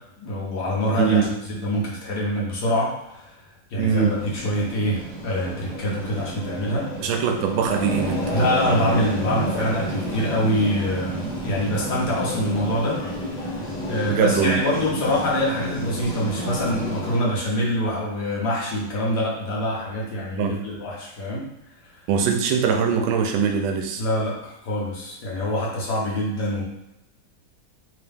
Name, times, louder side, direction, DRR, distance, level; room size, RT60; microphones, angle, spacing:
voice 1, 0.2-3.3 3.7-6.9 8.3-13.0 13.9-21.5 24.0-26.6, equal, 60° left, -4 dB, 1.4 m, -25 dB
voice 2, 1.0-1.3 3.8-4.2 7.0-8.3 14.0-14.6 20.4-20.6 22.1-24.0, right 6 dB, 90° right, 4 dB, 1.4 m, -22 dB
sound 1, 3.9-17.2, equal, 30° left, 0.9 m, -30 dB
3.7 x 2.8 x 3.4 m, 0.91 s
omnidirectional pair, 2.1 m